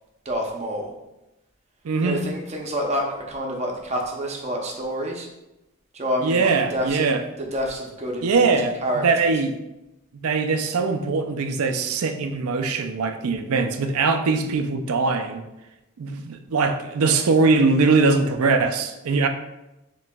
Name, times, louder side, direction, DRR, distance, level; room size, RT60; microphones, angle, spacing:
voice 1, 0.2-0.9 2.0-5.3 5.9-7.1 7.5-8.5 8.8-9.1, equal, 30° right, 0 dB, 0.7 m, -28 dB
voice 2, 1.8-2.2 6.2-7.2 8.2-9.5 10.1-15.4 16.0-19.3, right 4 dB, 85° right, 7 dB, 0.4 m, -21 dB
7.1 x 3.0 x 2.3 m, 0.95 s
head